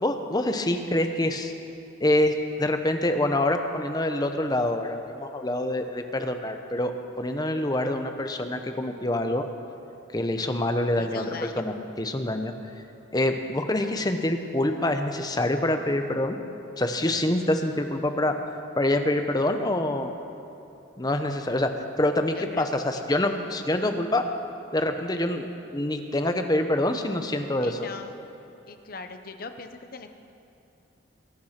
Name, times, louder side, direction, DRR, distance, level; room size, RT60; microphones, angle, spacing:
voice 1, 0.0-1.5 2.0-9.4 10.1-12.5 13.1-16.4 16.8-18.3 18.8-20.2 21.0-21.7 22.0-24.2 24.7-25.5 25.7-27.8, left 1 dB, 20° left, 6 dB, 0.8 m, -26 dB
voice 2, 11.0-11.6 12.6-12.7 22.3-23.1 27.6-28.2 28.7-30.1, left 4 dB, 50° left, 7 dB, 0.9 m, -40 dB
21.0 x 9.4 x 5.9 m, 2.9 s
head